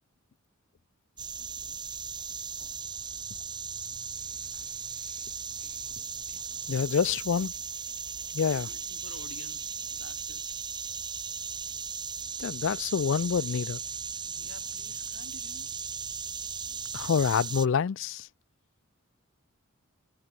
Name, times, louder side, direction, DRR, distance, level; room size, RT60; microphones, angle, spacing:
sound 1, 1.2-17.7, right 6 dB, 20° right, 2.5 m, -37 dB
voice 1, 1.3-1.8 6.7-7.5 8.4-10.6 14.3-15.8, left 3 dB, 90° left, 7.0 m, -52 dB
voice 2, 6.7-7.5 8.3-8.7 12.4-13.8 16.9-18.3, left 6 dB, 60° left, 0.4 m, -27 dB
head